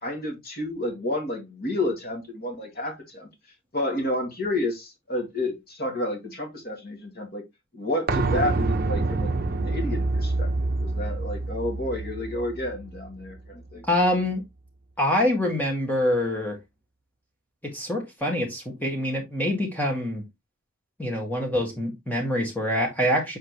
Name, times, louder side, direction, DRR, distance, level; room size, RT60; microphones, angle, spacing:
voice 1, 0.0-3.3 3.7-7.4 7.7-13.8, left 1 dB, 45° left, 2.2 m, -30 dB
sound 1, 8.1-13.7 14.0-14.1, right 2 dB, 45° right, 0.8 m, -27 dB
voice 2, 13.8-14.4 15.0-16.6 17.6-20.2 21.0-23.4, left 1 dB, 10° left, 1.9 m, -25 dB
7.3 x 4.4 x 3.1 m
head